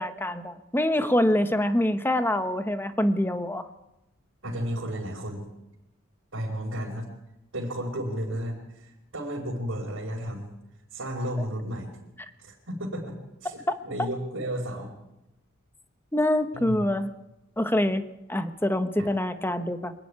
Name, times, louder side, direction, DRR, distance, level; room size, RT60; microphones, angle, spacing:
voice 1, 0.0-3.7 16.1-17.1 17.6-18.0 18.3-19.9, left 1 dB, 10° left, 9 dB, 1.1 m, -25 dB
voice 2, 4.4-5.4 6.3-7.1 7.5-10.5 10.9-11.9 12.4-14.9 16.5-16.9 19.0-19.1, equal, 75° right, -4 dB, 4.6 m, -33 dB
25.5 x 12.0 x 9.8 m, 0.91 s
head